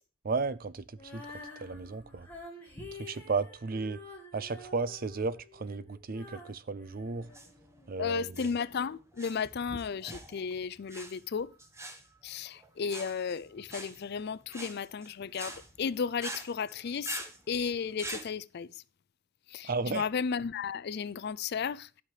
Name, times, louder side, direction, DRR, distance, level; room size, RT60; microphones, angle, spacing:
voice 1, 0.2-0.8 1.1-1.2 1.6-2.3 3.0-4.0 4.3-7.3 7.9-8.5 19.6-20.0, right 4 dB, 45° right, 0.5 m, -34 dB
Female singing, 1.0-8.0, left 2 dB, 10° left, 2.2 m, -49 dB
sound 1, 7.2-18.3, right 2 dB, 15° right, 1.1 m, -45 dB
voice 2, 8.0-11.5 12.2-18.8 19.5-22.0, left 6 dB, 50° left, 0.4 m, -34 dB
12.0 x 5.7 x 4.8 m
head